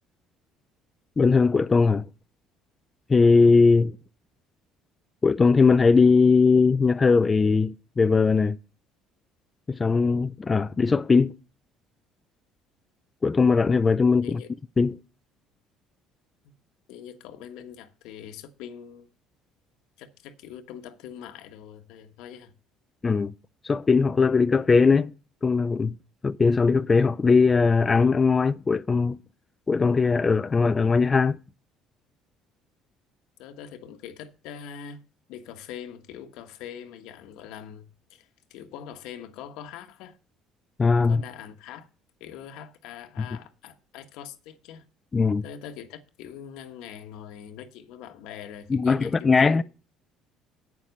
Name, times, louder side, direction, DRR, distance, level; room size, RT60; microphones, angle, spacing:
voice 1, 1.2-2.0 3.1-3.9 5.2-8.6 9.7-11.3 13.2-14.4 14.8-15.0 23.0-23.3 23.6-25.1 25.4-25.9 26.2-29.2 29.7-31.4 40.8-41.2 45.1-45.4 48.7-49.6, left 4 dB, 25° left, 0.4 m, -20 dB
voice 2, 16.9-19.1 20.0-22.5 33.4-35.0 35.3-40.2 41.1-41.9 42.2-44.8 45.4-49.6, left 9 dB, 80° left, 1.3 m, -43 dB
8.9 x 7.2 x 6.5 m
cardioid pair, 100°, 0 cm